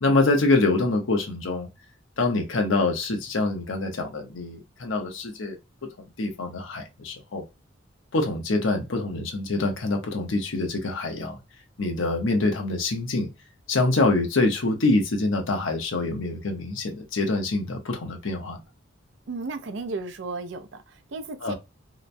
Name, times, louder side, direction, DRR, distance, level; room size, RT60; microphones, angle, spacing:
voice 1, 0.0-1.7 2.2-5.6 6.2-7.4 8.1-11.4 11.8-13.3 13.7-18.6 21.4-21.5, left 2 dB, 85° left, 0.7 m, -25 dB
voice 2, 19.3-21.5, right 3 dB, 70° right, 0.5 m, -34 dB
2.9 x 2.1 x 2.5 m
head